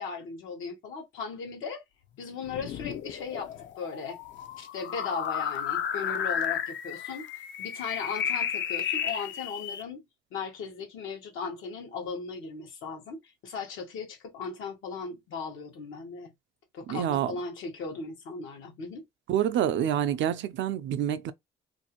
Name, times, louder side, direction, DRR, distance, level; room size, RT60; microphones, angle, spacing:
voice 1, 0.0-1.8 2.2-3.5 3.8-4.2 4.6-7.3 7.6-10.0 10.3-16.3 16.7-19.0, left 5 dB, 85° left, 1.0 m, -37 dB
sound 1, 2.4-9.8, left 8 dB, 70° left, 0.5 m, -33 dB
voice 2, 16.9-17.3 19.3-21.3, right 10 dB, 70° right, 0.4 m, -27 dB
2.5 x 2.4 x 2.8 m
cardioid pair, 90°, 20 cm